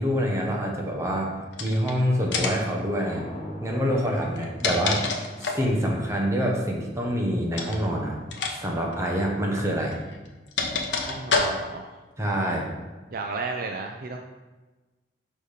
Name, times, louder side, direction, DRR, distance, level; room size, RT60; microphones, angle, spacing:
voice 1, 0.0-3.3 3.6-5.0 5.4-8.2 8.5-10.0 12.2-12.7, equal, 15° right, -1 dB, 1.0 m, -26 dB
sound 1, 1.5-1.9 2.3-2.7 4.2-5.7 7.5-7.8 8.3-8.6 8.8-8.9 9.9-11.9, left 4 dB, 75° left, 0.8 m, -28 dB
sound 2, 2.8-7.5, equal, 45° left, 1.4 m, -42 dB
voice 2, 10.9-12.0 13.1-14.2, right 3 dB, 50° right, 3 dB, 0.4 m, -33 dB
5.2 x 4.1 x 4.9 m, 1.2 s
head